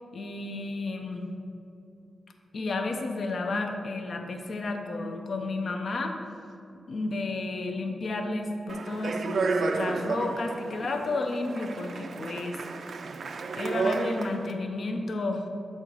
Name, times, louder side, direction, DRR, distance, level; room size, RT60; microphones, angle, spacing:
voice 1, 0.1-1.3 2.5-6.2 6.9-12.6 13.5-15.5, left 2 dB, 55° left, 4 dB, 0.7 m, -32 dB
Speech, 8.7-14.5, right 3 dB, 60° right, 0.4 m, -32 dB
7.8 x 4.4 x 4.7 m, 2.6 s
wide cardioid pair, 115°, 0 cm